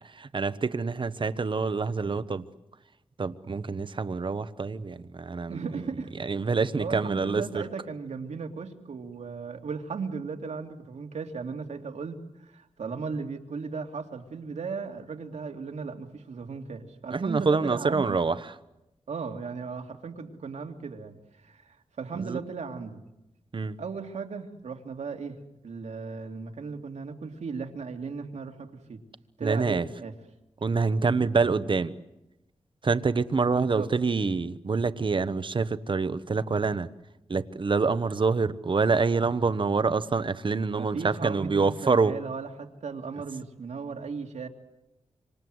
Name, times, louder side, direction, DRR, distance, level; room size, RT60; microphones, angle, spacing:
voice 1, 0.2-2.4 3.2-5.6 6.2-7.6 17.1-18.4 22.2-22.4 23.5-23.8 29.4-29.8 30.6-31.9 32.8-36.9 37.3-42.1, right 4 dB, 45° right, 14 dB, 1.1 m, -26 dB
voice 2, 5.5-6.3 6.8-18.2 19.1-21.2 21.4-23.0 23.8-25.4 25.6-29.0 29.4-30.1 33.6-33.9 40.7-44.5, right 5 dB, 85° right, 4 dB, 2.7 m, -36 dB
26.5 x 26.5 x 7.9 m, 0.95 s
wide cardioid pair, 95°, 11 cm